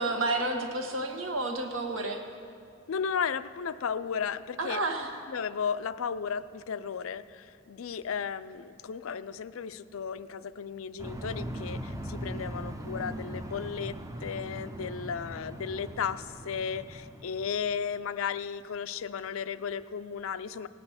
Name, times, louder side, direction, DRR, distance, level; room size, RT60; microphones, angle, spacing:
voice 1, 0.0-2.2 4.6-5.1, right 2 dB, 75° right, 3 dB, 1.5 m, -30 dB
voice 2, 2.9-4.8 5.3-14.0 14.2-20.7, left 6 dB, 85° left, 14 dB, 0.4 m, -34 dB
sound 1, 11.0-17.8, right 1 dB, 15° right, 0.6 m, -40 dB
18.0 x 8.9 x 5.7 m, 2.3 s
head